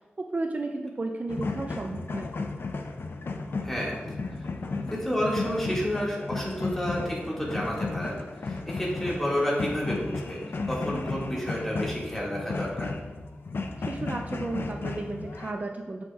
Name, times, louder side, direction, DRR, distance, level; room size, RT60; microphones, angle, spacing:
voice 1, 0.2-2.3 13.8-16.0, right 2 dB, 40° right, 3 dB, 0.4 m, -33 dB
sound 1, 1.3-15.5, left 3 dB, 65° left, 0.5 m, -34 dB
voice 2, 3.6-4.0 4.3-4.5 4.9-12.9, equal, 5° left, -5 dB, 1.8 m, -30 dB
7.4 x 6.1 x 2.3 m, 1.3 s
wide cardioid pair, 90°, 4 cm